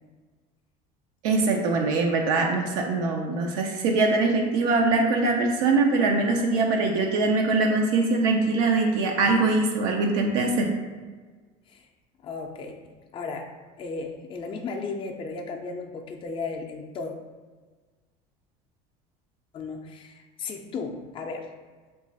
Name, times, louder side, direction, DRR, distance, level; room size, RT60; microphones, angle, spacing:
voice 1, 1.2-10.7, right 3 dB, 75° right, 1 dB, 0.5 m, -23 dB
voice 2, 12.2-12.7 13.1-13.5 13.8-17.1 19.5-21.5, left 4 dB, 30° left, 2 dB, 0.4 m, -35 dB
3.1 x 2.4 x 3.9 m, 1.4 s
supercardioid pair, 105°, 19 cm